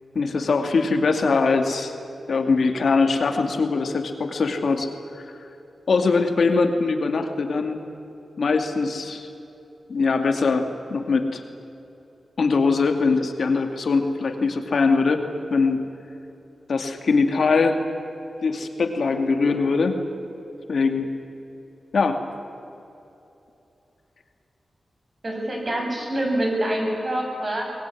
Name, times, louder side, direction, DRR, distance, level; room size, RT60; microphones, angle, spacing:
voice 1, 0.1-1.9 2.3-4.9 5.1-5.2 5.9-7.8 8.4-9.3 9.9-11.4 12.4-15.2 15.5-15.8 16.7-17.8 18.4-20.0 20.7-21.1 21.9-22.2, left 4 dB, 65° left, 6 dB, 2.3 m, -22 dB
voice 2, 25.2-27.6, right 1 dB, 35° right, 1 dB, 7.2 m, -25 dB
24.0 x 20.5 x 9.8 m, 3.0 s
wide cardioid pair, 95°, 0 cm